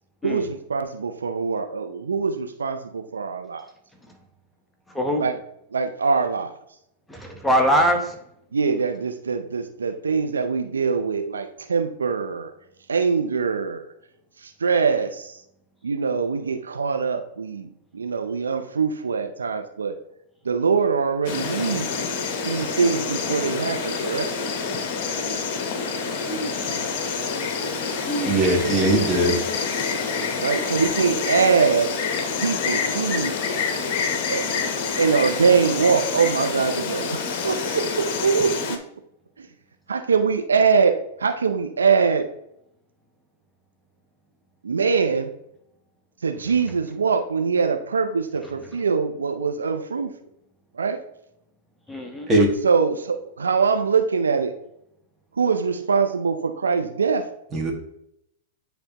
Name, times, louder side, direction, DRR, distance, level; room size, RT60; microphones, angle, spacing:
voice 1, 0.2-3.6 5.2-5.4 5.7-6.5 8.5-12.5 12.9-13.8 14.4-15.4 15.8-20.0 20.4-21.9 22.4-24.3 30.4-31.9 32.4-33.3 34.3-34.4 35.0-38.8 39.4-39.5 39.9-42.3 44.6-45.3 46.2-50.1 50.7-51.0 52.6-54.5 55.4-57.3, right 5 dB, 85° right, 6 dB, 0.6 m, -23 dB
voice 2, 7.1-8.2 26.3-26.5 28.1-28.4 51.9-52.3, equal, 5° left, 3 dB, 0.9 m, -23 dB
Insect, 21.2-38.8, left 5 dB, 50° left, 0.9 m, -27 dB
voice 3, 28.3-29.4 52.3-52.5 57.5-57.7, right 1 dB, 20° right, -1 dB, 1.8 m, -19 dB
10.0 x 3.4 x 2.9 m, 0.77 s
hypercardioid pair, 105°, 0 cm